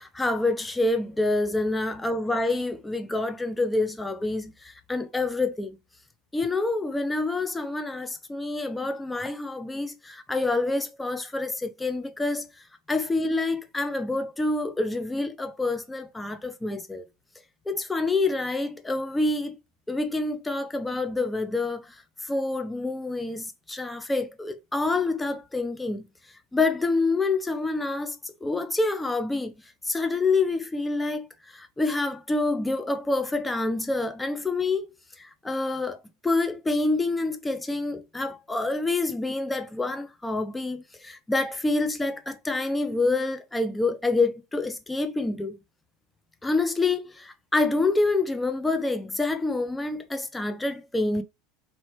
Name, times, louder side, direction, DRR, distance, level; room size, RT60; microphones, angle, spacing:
voice 1, 0.0-5.8 6.3-12.5 12.9-17.0 17.7-19.6 19.9-21.8 22.3-26.1 26.5-29.5 29.9-31.3 31.5-34.8 35.2-36.0 36.2-45.6 46.4-51.2, left 2 dB, 10° left, 0.6 m, -27 dB
4.1 x 3.2 x 2.9 m
supercardioid pair, 135°, 0 cm